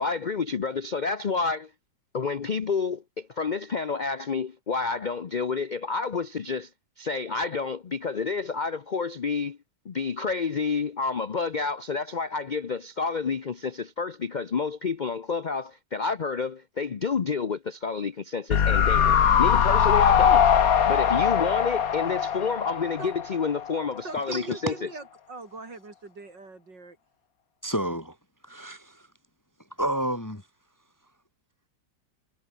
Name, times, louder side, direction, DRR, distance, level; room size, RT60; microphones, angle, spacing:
voice 1, 0.0-1.7 2.1-6.7 7.0-9.6 9.8-20.5 20.9-24.9, left 5 dB, 90° left, 0.4 m, -29 dB
sound 1, 18.5-23.8 24.0-24.1, left 8 dB, 55° left, 1.6 m, -21 dB
voice 2, 24.0-27.0, right 3 dB, 80° right, 5.3 m, -42 dB
voice 3, 27.6-28.1 28.4-29.0 29.8-30.4, right 1 dB, 10° left, 1.5 m, -30 dB
omnidirectional pair, 1.9 m